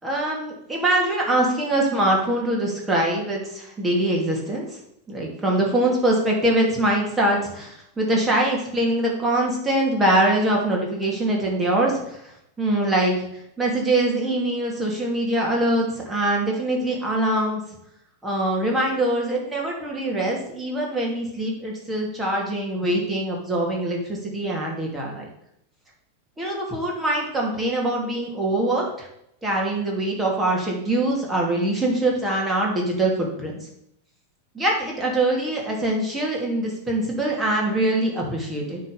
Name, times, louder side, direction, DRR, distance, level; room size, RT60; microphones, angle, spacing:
voice 1, 0.0-4.6 5.1-12.3 12.6-13.2 13.6-17.6 18.2-25.2 26.4-29.1 29.4-33.5 34.5-38.8, right 1 dB, 10° right, -2 dB, 2.7 m, -23 dB
9.6 x 4.0 x 6.7 m, 0.77 s
figure-of-eight pair, 90°, 0 cm